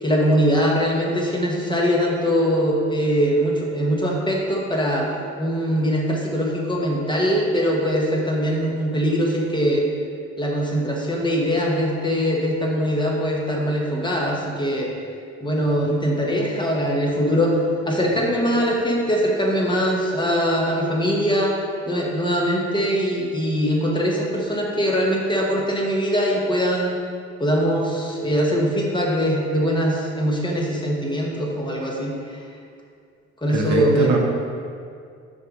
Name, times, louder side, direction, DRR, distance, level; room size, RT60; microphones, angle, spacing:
voice 1, 0.0-5.1 5.4-9.9 10.4-14.9 15.4-17.6 17.9-21.6 21.9-26.9 27.4-32.4 33.4-34.2, equal, 15° left, -2 dB, 1.3 m, -22 dB
voice 2, 33.5-34.2, right 4 dB, 70° right, 0 dB, 1.1 m, -22 dB
6.5 x 4.7 x 5.2 m, 2.3 s
cardioid pair, 90°, 30 cm